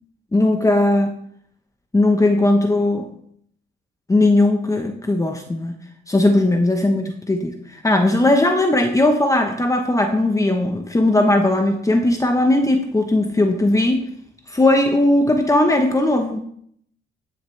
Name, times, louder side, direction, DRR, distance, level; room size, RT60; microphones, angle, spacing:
voice 1, 0.3-1.2 1.9-3.1 4.1-5.8 6.1-14.0 14.5-16.4, left 2 dB, 15° left, 4 dB, 1.0 m, -18 dB
14.5 x 6.5 x 3.4 m, 0.67 s
cardioid pair, 90°, 20 cm